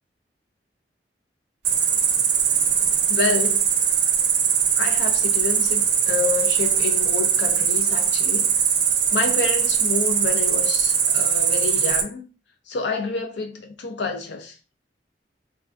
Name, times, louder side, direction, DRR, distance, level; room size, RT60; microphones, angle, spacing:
Cricket, 1.6-12.0, right 7 dB, 70° right, 0.5 m, -21 dB
voice 1, 3.1-3.7 4.7-8.7 9.1-12.3 12.7-14.6, left 4 dB, 75° left, 0.5 m, -28 dB
3.6 x 2.2 x 2.4 m
head